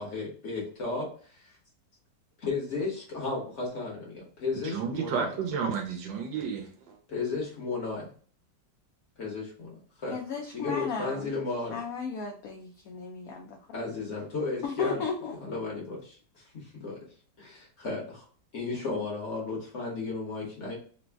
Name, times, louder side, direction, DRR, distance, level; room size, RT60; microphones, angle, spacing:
voice 1, 0.0-1.5 2.4-5.3 7.1-8.1 9.2-10.2 10.5-11.8 13.7-15.0 15.4-17.0 17.4-18.3 18.5-20.7, left 3 dB, 50° left, 1.1 m, -34 dB
voice 2, 4.6-6.6 6.9-7.0, right 6 dB, 85° right, 1.3 m, -31 dB
voice 3, 10.1-11.3 11.7-13.8 14.6-15.4, left 5 dB, 75° left, 0.8 m, -35 dB
3.3 x 2.0 x 3.3 m
omnidirectional pair, 2.0 m